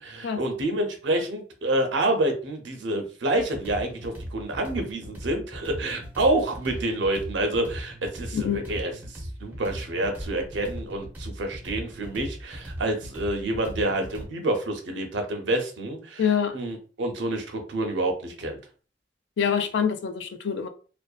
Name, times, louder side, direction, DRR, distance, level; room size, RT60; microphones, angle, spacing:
voice 1, 0.0-8.4 8.7-16.2 16.5-18.6, right 1 dB, 80° right, 0.6 m, -28 dB
sound 1, 3.3-14.3, equal, 10° right, 0.5 m, -38 dB
voice 2, 8.3-8.6 16.2-16.6 19.4-20.7, left 7 dB, 70° left, 0.3 m, -25 dB
2.5 x 2.1 x 2.3 m
head